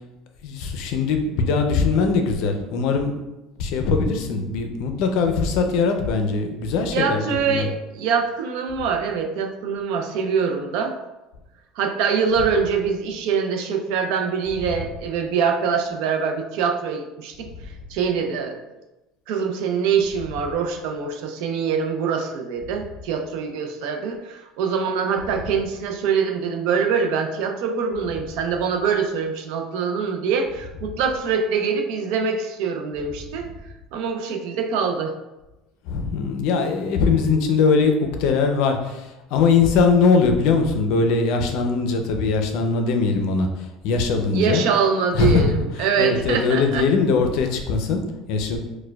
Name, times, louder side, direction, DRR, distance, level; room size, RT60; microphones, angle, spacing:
voice 1, 0.4-3.1 3.6-7.7 14.6-14.8 25.3-25.4 35.9-37.9 38.2-38.8 39.3-43.5 43.8-44.6 45.1-48.0 48.3-48.6, left 4 dB, 65° left, 5 dB, 0.4 m, -21 dB
voice 2, 6.9-10.9 11.8-17.5 17.9-18.6 19.3-33.5 33.9-35.1 44.3-46.9, right 6 dB, 70° right, 4 dB, 0.4 m, -24 dB
4.5 x 2.1 x 2.2 m, 1.0 s
cardioid pair, 140°, 0 cm